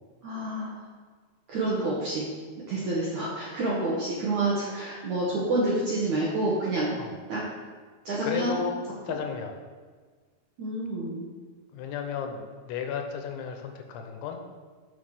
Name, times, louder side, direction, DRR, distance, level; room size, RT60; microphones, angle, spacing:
voice 1, 0.2-0.8 1.5-2.3 2.7-7.0 7.3-7.4 8.0-8.5 10.6-11.3, right 2 dB, 60° right, -6 dB, 2.1 m, -28 dB
voice 2, 8.2-8.8 9.0-9.6 11.7-14.4, left 7 dB, 80° left, 4 dB, 3.1 m, -34 dB
7.5 x 7.1 x 6.6 m, 1.5 s
omnidirectional pair, 5.5 m